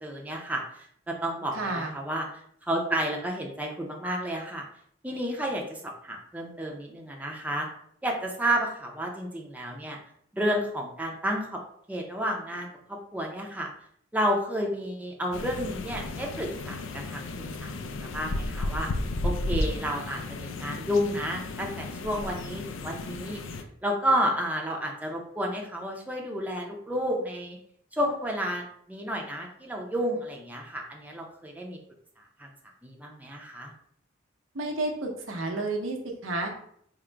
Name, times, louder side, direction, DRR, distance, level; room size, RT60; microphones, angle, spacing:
voice 1, 0.0-0.6 1.1-2.3 2.6-4.6 5.0-7.7 8.0-10.0 10.3-11.6 11.9-13.7 14.1-18.9 19.2-27.6 27.9-31.8 32.4-32.5 32.8-33.7, equal, 10° right, -1 dB, 0.5 m, -31 dB
voice 2, 1.5-1.9 34.5-36.0 36.2-36.5, right 2 dB, 85° right, 2 dB, 0.8 m, -30 dB
sound 1, 15.3-23.6, left 2 dB, 85° left, 0.4 m, -34 dB
3.7 x 2.1 x 4.4 m, 0.66 s
head